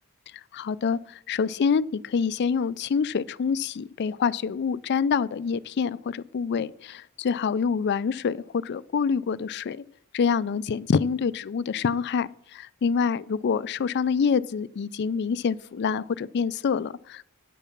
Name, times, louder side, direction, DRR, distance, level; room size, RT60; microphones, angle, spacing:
voice 1, 0.5-9.8 10.1-17.3, left 6 dB, 50° left, 18 dB, 0.4 m, -26 dB
9.3 x 6.7 x 5.8 m, 0.69 s
head